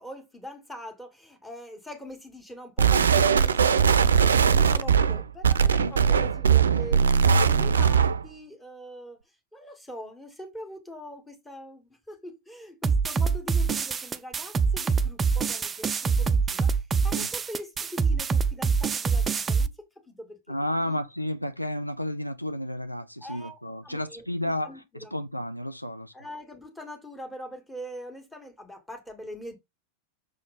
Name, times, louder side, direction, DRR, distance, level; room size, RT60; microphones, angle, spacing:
voice 1, 0.0-9.2 9.5-21.0 23.2-25.1 26.1-29.6, equal, 5° left, 2.1 m, -43 dB
sound 1, 2.8-8.3, right 7 dB, 70° right, 0.5 m, -20 dB
sound 2, 12.8-19.7, right 5 dB, 20° right, 0.5 m, -25 dB
voice 2, 20.5-24.8 25.1-26.1, left 1 dB, 90° left, 0.5 m, -32 dB
6.5 x 4.2 x 3.5 m
figure-of-eight pair, 90°, 0 cm